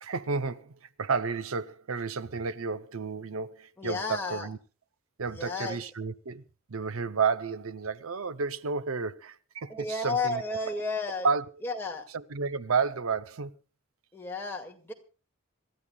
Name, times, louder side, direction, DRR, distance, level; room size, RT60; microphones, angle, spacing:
voice 1, 0.0-4.6 5.2-6.4 6.7-10.4 11.2-11.4 12.1-13.5, right 5 dB, 80° right, 0.7 m, -31 dB
voice 2, 3.8-4.5 5.3-5.8 9.7-11.3 11.6-12.0 14.1-14.9, left 3 dB, 10° left, 2.1 m, -32 dB
27.0 x 14.0 x 2.3 m
head